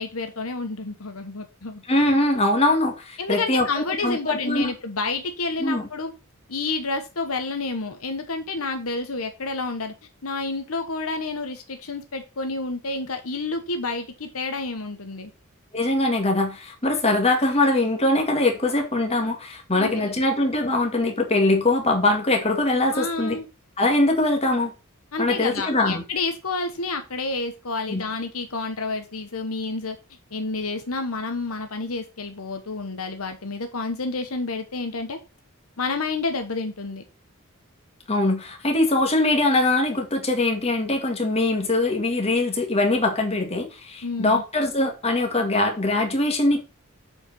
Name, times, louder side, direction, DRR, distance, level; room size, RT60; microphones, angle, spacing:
voice 1, 0.0-1.8 3.2-6.1 6.5-9.9 10.2-15.3 19.7-20.3 22.9-23.5 25.1-30.0 30.3-35.2 35.8-37.0 44.0-44.4, left 3 dB, 75° left, 1.2 m, -29 dB
voice 2, 1.9-4.7 5.6-5.9 15.7-23.4 23.8-24.7 25.2-26.0 27.9-28.0 38.1-46.6, left 2 dB, 30° left, 2.0 m, -22 dB
7.9 x 4.8 x 5.4 m
head